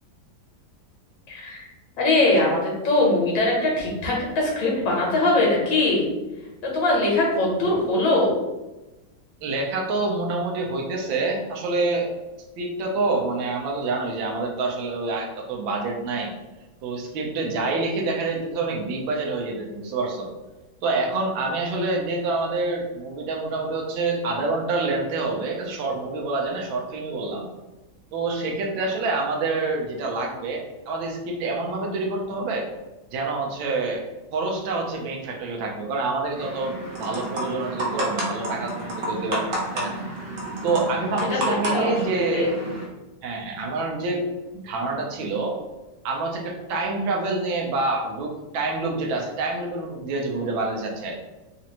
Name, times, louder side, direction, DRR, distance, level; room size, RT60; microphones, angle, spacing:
voice 1, 1.3-1.7 2.0-6.1 6.6-8.4 41.5-42.6, left 2 dB, 80° left, -3 dB, 1.8 m, -22 dB
voice 2, 9.4-12.1 12.6-16.3 16.8-20.3 20.8-27.5 28.1-32.7 33.1-34.0 34.3-39.5 39.7-40.0 40.6-42.5 43.2-44.3 44.5-45.6 46.0-51.2, right 3 dB, 85° right, 0 dB, 1.4 m, -27 dB
sound 1, 36.4-42.8, right 1 dB, 55° right, 0.6 m, -31 dB
4.1 x 2.5 x 2.9 m, 1.1 s
omnidirectional pair, 2.1 m